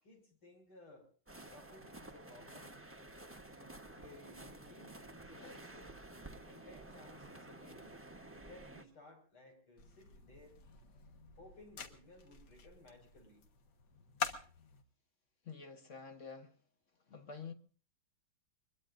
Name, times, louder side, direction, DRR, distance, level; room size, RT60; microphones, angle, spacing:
voice 1, 0.0-1.1 1.4-2.8 3.5-6.0 6.4-8.0 8.4-10.6 11.4-13.5, left 2 dB, 85° left, 6.1 m, -59 dB
sound 1, 1.3-8.8, right 2 dB, 10° right, 0.6 m, -52 dB
sound 2, 9.8-14.8, left 6 dB, 60° left, 1.9 m, -46 dB
voice 2, 15.4-16.5 17.1-17.5, left 5 dB, 40° left, 1.3 m, -48 dB
23.5 x 21.5 x 2.6 m
omnidirectional pair, 2.2 m